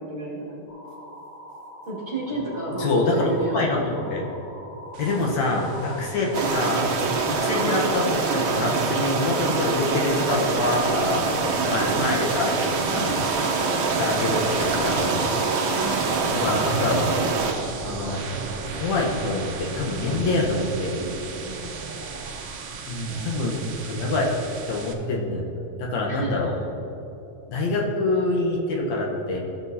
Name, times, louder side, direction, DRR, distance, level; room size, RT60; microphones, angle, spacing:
voice 1, 0.1-0.6 1.9-3.6 9.3-9.6 11.7-12.5 15.8-16.1 20.0-20.4 21.4-22.1 23.0-23.4 26.1-26.5, right 2 dB, 25° right, -8 dB, 2.0 m, -33 dB
sound 1, 0.7-16.2, equal, 30° left, 2.6 m, -39 dB
voice 2, 2.8-3.3 3.5-4.3 5.0-6.9 7.3-13.5 13.9-15.2 16.3-17.0 17.8-18.2 18.7-20.9 22.9-24.3 24.7-25.4 25.8-26.5 27.5-29.4, left 2 dB, 70° left, -1 dB, 2.3 m, -26 dB
sound 2, 4.9-24.9, right 5 dB, 85° right, 1.1 m, -36 dB
sound 3, 6.3-17.5, right 4 dB, 70° right, 1.2 m, -25 dB
16.0 x 7.0 x 2.8 m, 3.0 s
omnidirectional pair, 3.4 m